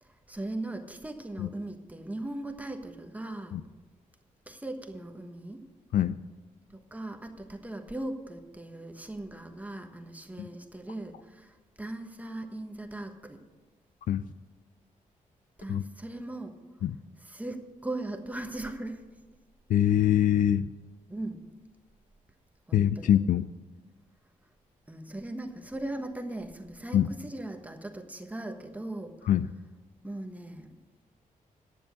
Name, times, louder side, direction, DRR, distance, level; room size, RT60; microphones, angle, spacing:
voice 1, 0.0-3.6 4.5-5.6 6.7-13.4 15.6-16.6 17.2-19.0 21.1-21.4 22.7-23.2 24.9-29.3 30.0-30.8, right 1 dB, 10° right, 5 dB, 1.2 m, -39 dB
voice 2, 19.7-20.7 22.7-23.5 26.9-27.1 29.3-29.5, left 10 dB, 70° left, 12 dB, 0.4 m, -23 dB
10.5 x 7.0 x 8.3 m, 1.2 s
cardioid pair, 90°, 14 cm